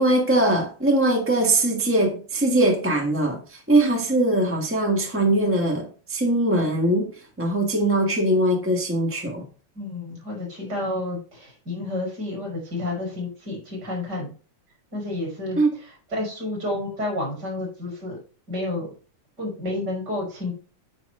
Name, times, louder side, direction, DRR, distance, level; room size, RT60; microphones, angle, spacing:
voice 1, 0.0-7.1 7.4-9.4 15.6-15.8, right 1 dB, 10° right, 0.5 m, -21 dB
voice 2, 9.7-14.3 14.9-18.2 18.5-18.9 19.4-20.5, left 2 dB, 30° right, 5.0 m, -30 dB
10.0 x 5.1 x 5.5 m
omnidirectional pair, 3.7 m